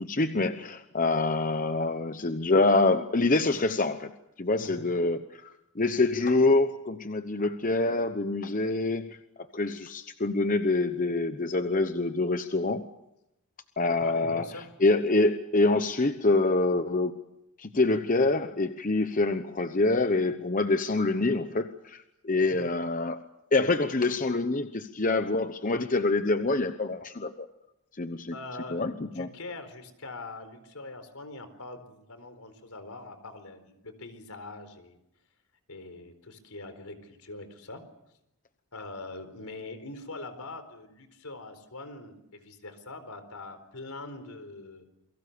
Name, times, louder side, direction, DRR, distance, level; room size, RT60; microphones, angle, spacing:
voice 1, 0.0-4.1 4.4-9.2 9.5-12.8 13.8-14.5 14.8-17.2 17.6-23.2 23.5-27.5 28.0-28.3 28.7-29.3, left 2 dB, 35° left, 9 dB, 1.0 m, -26 dB
voice 2, 14.0-14.7 22.4-22.6 28.3-28.9 29.1-35.0 35.7-37.8 38.7-44.8, left 2 dB, 75° left, 9 dB, 4.2 m, -43 dB
28.5 x 23.0 x 6.9 m, 0.84 s
head